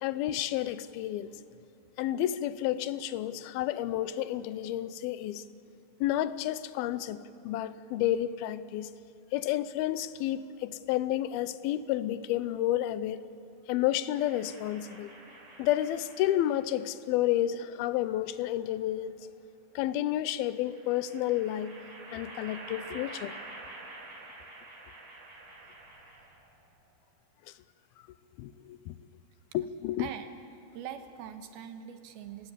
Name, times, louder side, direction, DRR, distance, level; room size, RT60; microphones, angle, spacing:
voice 1, 0.0-1.4 2.0-5.4 6.0-8.9 9.3-13.2 13.7-15.1 15.6-19.2 19.8-21.7 22.1-23.3 28.4-29.0 29.5-30.1, left 13 dB, 85° left, 15 dB, 2.6 m, -30 dB
sound 1, 14.2-16.8 17.9-18.9 20.5-26.5, right 2 dB, 70° right, 6.0 m, -48 dB
voice 2, 30.7-32.5, right 9 dB, 90° right, 8 dB, 3.1 m, -42 dB
29.5 x 16.0 x 8.4 m, 2.9 s
omnidirectional pair, 4.3 m